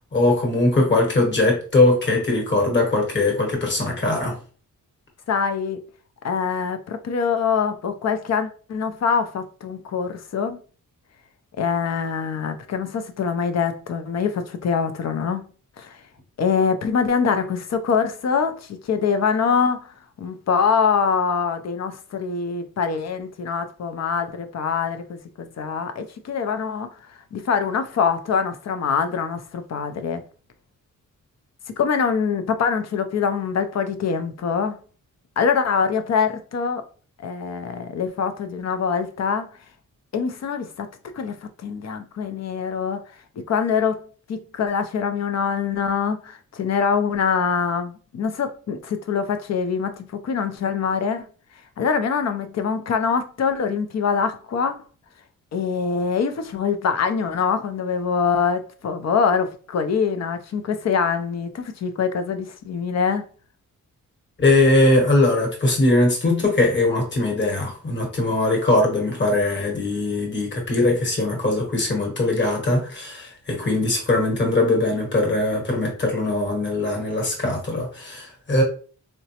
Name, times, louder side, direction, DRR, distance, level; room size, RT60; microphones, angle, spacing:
voice 1, 0.1-4.4 64.4-78.6, left 2 dB, 35° left, 1.1 m, -20 dB
voice 2, 5.3-5.8 6.2-10.6 11.6-15.4 15.8-16.0 16.4-19.9 20.2-26.9 27.3-30.2 31.8-34.8 35.4-36.8 37.2-39.5 40.1-40.9 41.1-41.4 41.6-43.0 43.5-44.0 44.3-51.3 51.8-54.8 55.5-63.2, left 6 dB, 50° left, 0.5 m, -24 dB
3.9 x 2.2 x 2.8 m
wide cardioid pair, 135°, 34 cm